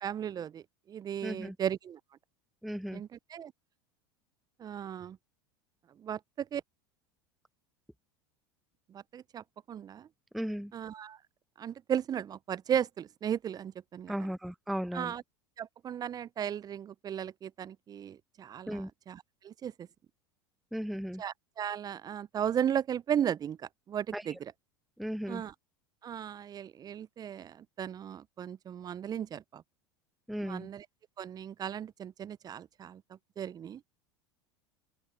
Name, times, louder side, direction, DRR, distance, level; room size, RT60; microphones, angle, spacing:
voice 1, 0.0-2.0 2.9-3.5 4.6-5.2 6.0-6.6 8.9-10.1 10.7-11.2 11.6-14.1 14.9-15.2 15.6-19.9 21.2-24.5 25.3-25.5 26.0-29.6 30.4-30.9 31.2-33.8, right 9 dB, 30° right, 0.7 m, -36 dB
voice 2, 1.2-1.6 2.6-3.0 10.3-10.7 14.1-15.1 18.7-18.9 20.7-21.2 24.1-24.2 25.0-25.4 30.3-30.7, equal, ahead, 0.5 m, -36 dB
open air
hypercardioid pair, 85°, 13 cm